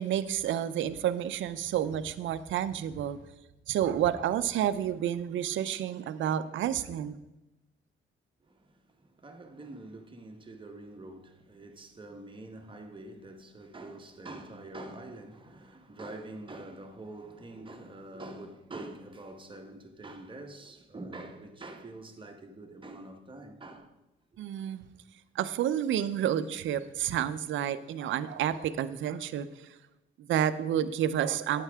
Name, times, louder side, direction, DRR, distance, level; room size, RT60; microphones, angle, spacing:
voice 1, 0.0-3.2 3.7-7.2 24.4-24.9 25.3-29.7 30.2-31.6, right 10 dB, 75° right, 0.7 m, -30 dB
voice 2, 8.4-24.0, right 2 dB, 25° right, 1.3 m, -45 dB
11.5 x 8.9 x 3.6 m
cardioid pair, 90°, 20 cm